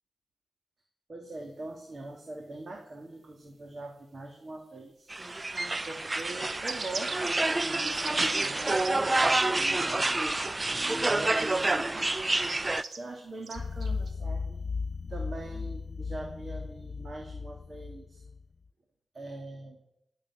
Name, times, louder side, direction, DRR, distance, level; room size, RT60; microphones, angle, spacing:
voice 1, 1.1-5.1 5.9-7.3 7.6-10.2 10.7-12.1 13.0-14.6 15.1-18.2 19.1-19.8, right 2 dB, 50° right, 2 dB, 2.6 m, -42 dB
sound 1, 5.1-12.8, right 2 dB, 25° right, 0.6 m, -28 dB
sound 2, 5.5-8.9 9.2-9.4 9.8-10.8 11.1-11.6 12.3-13.0 13.4-14.1, right 4 dB, 70° right, 1.8 m, -41 dB
sound 3, 13.6-18.5, left 4 dB, 60° left, 0.5 m, -36 dB
17.5 x 7.4 x 9.3 m, 0.80 s
wide cardioid pair, 80°, 0 cm